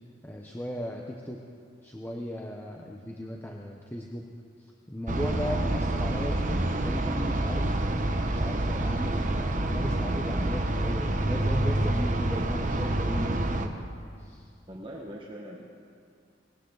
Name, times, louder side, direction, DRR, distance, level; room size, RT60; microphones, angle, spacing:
voice 1, 0.2-1.4 1.8-4.3 4.9-13.8 14.2-14.5, equal, 10° left, 0 dB, 0.9 m, -36 dB
sound 1, 5.1-13.7, right 1 dB, 40° right, 1.0 m, -27 dB
voice 2, 14.7-15.6, equal, 25° right, -2 dB, 1.5 m, -41 dB
21.0 x 17.0 x 4.0 m, 2.3 s
head